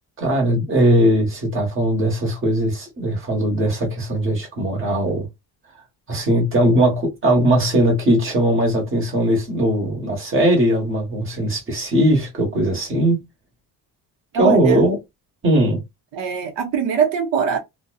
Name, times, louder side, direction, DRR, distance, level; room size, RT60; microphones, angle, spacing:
voice 1, 0.2-5.3 6.1-13.2 14.4-15.0 15.4-15.8, right 1 dB, 30° right, 1.2 m, -19 dB
voice 2, 14.3-14.8 16.1-17.6, right 7 dB, 85° right, 0.8 m, -22 dB
2.5 x 2.2 x 2.4 m
cardioid pair, 150°, 41 cm